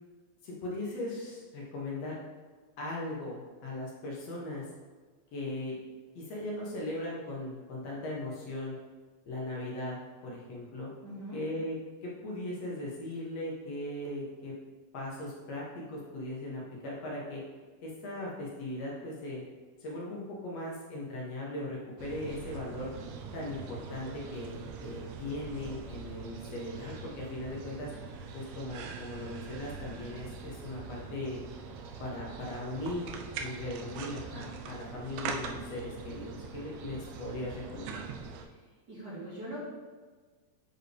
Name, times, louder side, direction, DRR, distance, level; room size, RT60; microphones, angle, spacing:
voice 1, 0.4-2.2 2.8-4.7 5.3-5.8 6.1-8.8 9.3-10.9 11.3-11.8 12.0-14.5 14.9-17.4 17.8-19.4 19.8-22.9 23.3-27.9 28.3-31.4 32.0-33.1 33.4-38.0, left 1 dB, 65° left, -4 dB, 2.1 m, -38 dB
voice 2, 11.0-11.4 38.5-38.6 38.9-39.6, right 1 dB, 40° right, -9 dB, 2.1 m, -42 dB
sound 1, 22.0-38.4, right 5 dB, 80° right, 1.7 m, -43 dB
7.8 x 4.6 x 3.3 m, 1.4 s
omnidirectional pair, 3.4 m